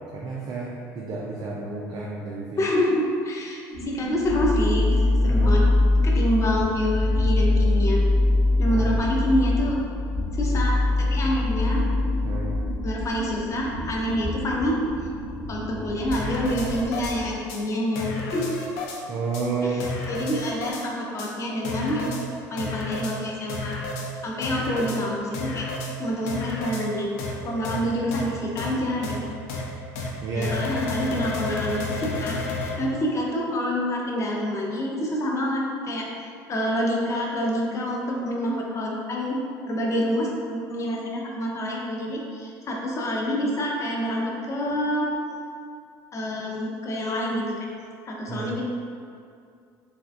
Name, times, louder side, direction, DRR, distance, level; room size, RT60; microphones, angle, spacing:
voice 1, 0.1-2.5 5.3-5.6 8.7-9.0 12.2-12.5 19.1-19.8 27.7-27.8 30.2-30.7 48.3-48.5, right 3 dB, 50° right, -3 dB, 0.4 m, -31 dB
voice 2, 2.6-5.0 5.2-5.6 6.0-8.0 8.6-9.8 10.3-11.8 12.8-14.8 15.5-18.6 19.6-22.2 22.5-23.8 24.2-25.7 26.0-27.1 27.4-29.1 30.3-32.4 32.8-36.1 36.5-39.4 39.7-45.1 46.1-47.7 48.0-48.6, equal, 35° left, -2 dB, 0.6 m, -27 dB
sound 1, 3.7-17.2, left 2 dB, 20° right, 1.1 m, -24 dB
sound 2, 16.1-17.1 17.5-17.6 18.0-19.0 19.3-19.4 19.8-20.8 21.2-21.3 21.6-22.2 22.6-23.1 23.5-24.1 24.4-25.0 25.3-25.9 26.3-26.8 27.2-27.3 27.6-27.8 28.1-28.2 28.6-28.7 29.0-29.2 29.5-29.6 30.0-30.1 30.4-32.7, left 3 dB, 80° left, 0.4 m, -31 dB
3.4 x 2.2 x 2.5 m, 2.4 s
supercardioid pair, 80°, 9 cm